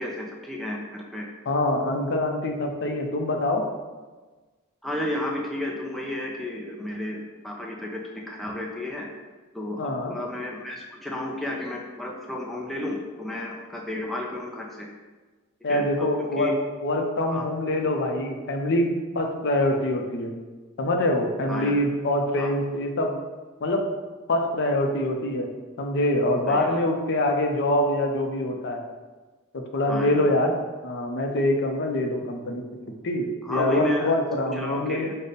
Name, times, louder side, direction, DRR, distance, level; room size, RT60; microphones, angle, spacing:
voice 1, 0.0-1.3 4.8-9.1 9.5-9.8 10.1-14.9 15.7-16.5 17.3-17.5 21.5-21.7 22.4-22.5 26.5-26.8 29.9-30.3 33.4-34.1 34.5-35.2, left 1 dB, ahead, -2 dB, 0.3 m, -32 dB
voice 2, 1.5-3.6 9.8-10.1 15.6-16.5 16.8-20.3 20.8-23.1 23.6-23.8 24.3-25.5 25.8-28.8 29.5-30.5 30.8-32.6 33.0-35.1, left 1 dB, 55° left, 4 dB, 0.5 m, -24 dB
5.1 x 2.1 x 4.0 m, 1.3 s
head